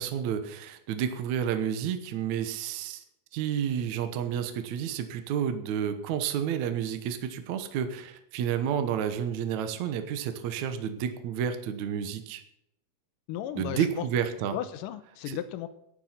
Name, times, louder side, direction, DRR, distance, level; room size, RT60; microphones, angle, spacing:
voice 1, 0.0-3.0 3.3-12.4 13.6-14.6 15.3-15.4, right 8 dB, 65° right, 8 dB, 2.1 m, -30 dB
voice 2, 13.3-14.0 14.5-15.7, left 11 dB, 75° left, 12 dB, 2.2 m, -35 dB
11.5 x 10.5 x 5.9 m, 0.78 s
omnidirectional pair, 4.4 m